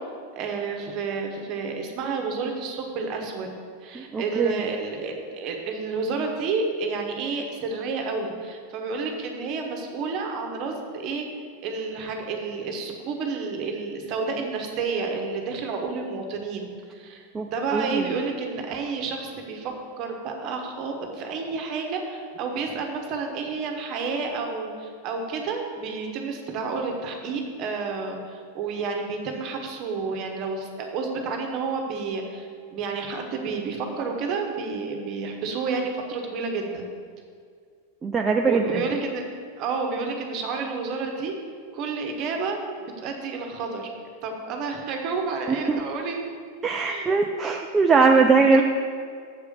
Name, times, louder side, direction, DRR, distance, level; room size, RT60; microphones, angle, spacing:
voice 1, 0.3-3.5 3.8-11.2 11.6-36.9 38.4-39.2 39.6-41.3 41.7-43.9 44.2-46.2 46.8-47.2 48.5-48.6, right 4 dB, 40° right, 3 dB, 1.2 m, -30 dB
voice 2, 4.0-4.5 17.3-18.0 38.0-38.8 46.6-48.6, right 4 dB, 20° right, 3 dB, 0.4 m, -21 dB
7.3 x 4.8 x 6.9 m, 2.1 s
figure-of-eight pair, 90°, 0 cm